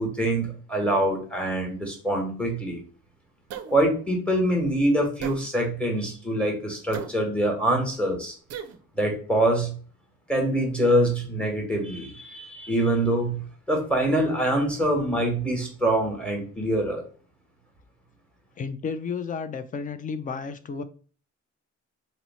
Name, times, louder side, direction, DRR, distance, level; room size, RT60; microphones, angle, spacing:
voice 1, 0.0-2.8 3.7-8.3 8.9-9.8 10.3-17.1, right 1 dB, 5° left, 1 dB, 1.1 m, -25 dB
sound 1, 3.5-3.8 5.2-5.4 6.9-7.1 8.5-8.8, right 8 dB, 55° right, 0.4 m, -35 dB
voice 2, 18.6-20.8, left 5 dB, 30° left, 11 dB, 0.4 m, -32 dB
2.7 x 2.1 x 4.0 m, 0.41 s
cardioid pair, 90°, 30 cm